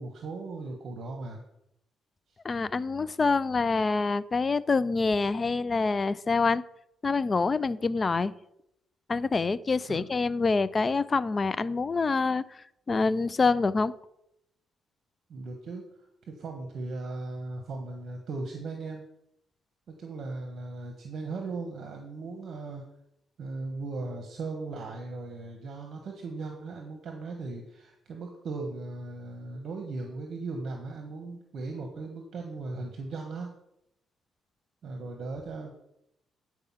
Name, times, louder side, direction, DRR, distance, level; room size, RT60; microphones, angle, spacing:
voice 1, 0.0-1.4 9.9-10.1 15.3-15.8 16.3-19.0 19.9-22.8 23.4-33.5 34.8-35.7, right 3 dB, 60° right, 3 dB, 1.2 m, -37 dB
voice 2, 2.4-6.6 7.0-8.3 9.1-13.9, left 4 dB, 30° left, 17 dB, 0.4 m, -26 dB
9.0 x 4.7 x 5.7 m, 0.80 s
cardioid pair, 90°, 0 cm